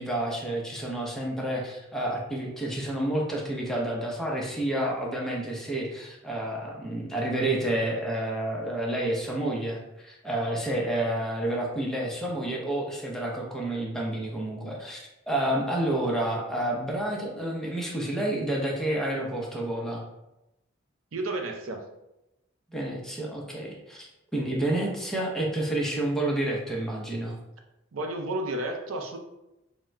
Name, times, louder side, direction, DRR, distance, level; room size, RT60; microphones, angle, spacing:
voice 1, 0.0-20.0 22.7-27.4, right 1 dB, ahead, -2 dB, 0.6 m, -29 dB
voice 2, 21.1-21.8 27.9-29.2, right 2 dB, 75° right, 4 dB, 0.5 m, -31 dB
3.6 x 2.1 x 4.3 m, 0.92 s
head